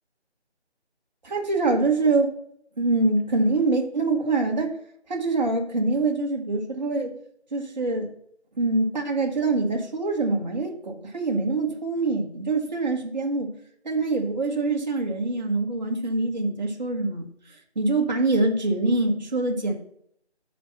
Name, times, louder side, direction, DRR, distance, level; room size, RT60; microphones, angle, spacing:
voice 1, 1.2-2.3 2.8-4.7 5.1-7.1 7.5-8.1 8.6-13.5 13.8-17.3 17.7-19.7, right 3 dB, 40° right, 1 dB, 1.3 m, -24 dB
9.9 x 4.4 x 5.7 m, 0.70 s
figure-of-eight pair, 160°, 34 cm